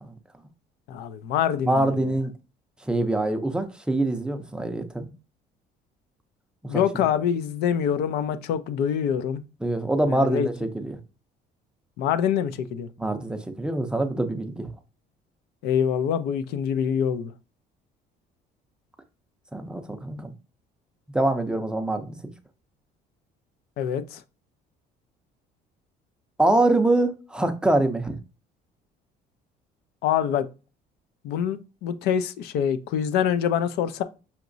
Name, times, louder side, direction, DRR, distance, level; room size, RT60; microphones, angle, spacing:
voice 1, 0.9-2.1 6.7-9.4 10.1-10.5 12.0-12.9 15.6-17.3 23.8-24.2 30.0-30.5 31.2-34.0, left 8 dB, 80° left, 0.5 m, -25 dB
voice 2, 1.7-2.3 2.9-5.1 6.7-6.8 9.6-11.0 13.0-14.7 19.5-20.3 21.1-22.2 26.4-28.2, right 2 dB, 5° right, 0.4 m, -24 dB
5.8 x 3.0 x 2.5 m
cardioid pair, 160°, 16 cm